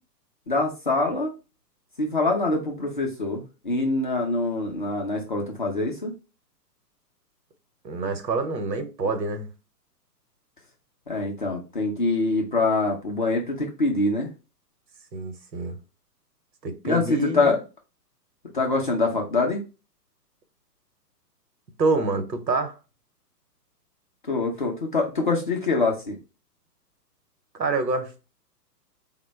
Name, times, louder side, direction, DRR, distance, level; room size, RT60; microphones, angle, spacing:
voice 1, 0.5-1.3 2.0-6.1 11.1-14.3 16.8-17.6 18.5-19.6 24.3-26.2, left 3 dB, 35° left, 0.4 m, -24 dB
voice 2, 7.8-9.5 15.1-15.8 16.6-17.6 21.8-22.8 27.5-28.3, right 3 dB, 90° right, 0.8 m, -27 dB
3.5 x 2.1 x 3.1 m
figure-of-eight pair, 120°, 49 cm